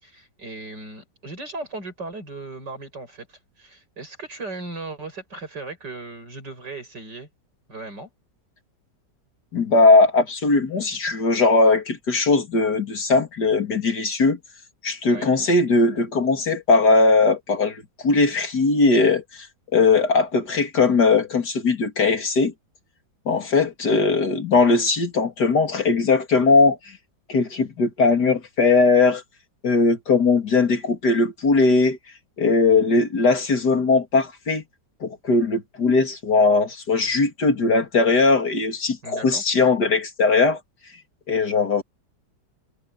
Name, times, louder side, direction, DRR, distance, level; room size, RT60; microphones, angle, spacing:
voice 1, 0.0-7.3 7.7-8.1 15.1-15.3 39.0-39.4, right 3 dB, 80° right, 7.7 m, -37 dB
voice 2, 9.5-14.4 14.8-19.5 19.7-22.5 23.3-26.8 27.3-29.2 29.6-32.0 32.4-34.6 35.0-40.6 41.3-41.8, left 3 dB, 70° left, 3.3 m, -19 dB
omnidirectional pair, 1.9 m